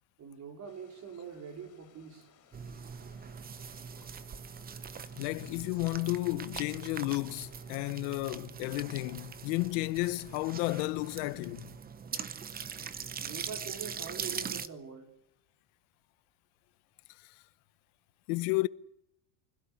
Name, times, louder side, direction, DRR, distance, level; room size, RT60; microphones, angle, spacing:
voice 1, 0.2-2.3 13.2-15.1, right 6 dB, 35° right, 4.7 m, -44 dB
sound 1, 0.6-8.0, left 7 dB, 30° left, 5.0 m, -64 dB
sound 2, 2.5-14.7, right 6 dB, 20° right, 0.8 m, -42 dB
voice 2, 5.1-11.7 17.2-17.3 18.3-18.7, left 22 dB, 70° left, 1.0 m, -32 dB
25.0 x 17.0 x 8.4 m
cardioid pair, 150°, 50 cm